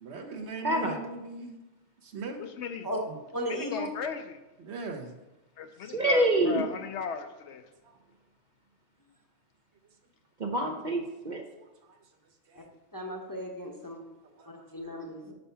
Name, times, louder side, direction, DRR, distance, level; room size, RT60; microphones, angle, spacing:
voice 1, 0.0-1.6 2.0-2.4 3.1-3.2 4.6-5.2 7.8-8.0 11.6-12.0 12.5-12.7 13.9-15.0, right 3 dB, 60° right, 4 dB, 1.1 m, -41 dB
voice 2, 0.6-1.0 5.8-6.6 10.4-11.4, right 1 dB, 45° right, 3 dB, 0.7 m, -26 dB
voice 3, 2.4-2.9 3.5-4.4 5.6-7.6, left 6 dB, 70° left, 8 dB, 0.9 m, -37 dB
voice 4, 3.3-3.9 12.9-14.0 14.5-15.3, equal, 20° left, 0 dB, 0.8 m, -35 dB
5.5 x 5.5 x 5.5 m, 1.0 s
omnidirectional pair, 1.3 m